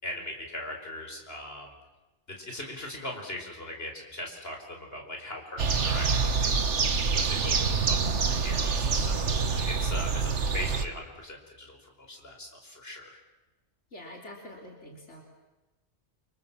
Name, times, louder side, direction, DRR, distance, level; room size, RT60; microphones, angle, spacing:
voice 1, 0.0-1.7 2.3-13.2, left 1 dB, 60° left, 2 dB, 5.2 m, -40 dB
sound 1, 5.6-10.8, right 5 dB, 85° right, 1.7 m, -26 dB
voice 2, 13.9-15.2, left 1 dB, 85° left, 0 dB, 3.8 m, -45 dB
29.0 x 25.5 x 7.4 m, 1.1 s
omnidirectional pair, 1.2 m